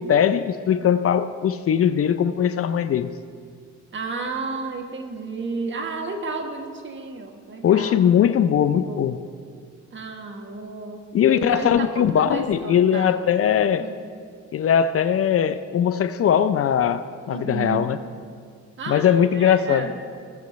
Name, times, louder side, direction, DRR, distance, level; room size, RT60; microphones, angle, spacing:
voice 1, 0.0-3.1 7.6-9.2 11.1-13.8 14.5-18.0 18.9-19.9, left 9 dB, 50° left, 12 dB, 0.5 m, -20 dB
voice 2, 3.9-8.0 8.8-9.0 9.9-13.2 13.8-13.9 17.2-18.0 18.8-19.9, right 3 dB, 40° right, 3 dB, 1.5 m, -32 dB
19.0 x 7.7 x 3.1 m, 2.1 s
cardioid pair, 90°, 30 cm